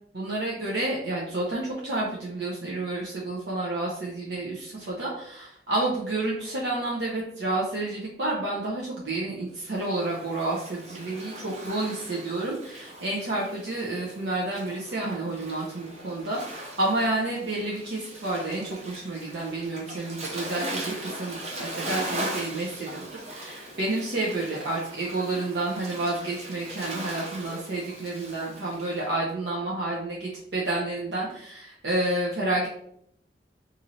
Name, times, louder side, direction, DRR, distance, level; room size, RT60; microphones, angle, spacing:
voice 1, 0.1-4.7 5.0-5.1 5.7-32.7, right 2 dB, 80° right, -5 dB, 0.7 m, -30 dB
Waves surf, 9.6-29.0, right 1 dB, 40° right, 0.7 m, -39 dB
3.9 x 2.6 x 3.1 m, 0.71 s
head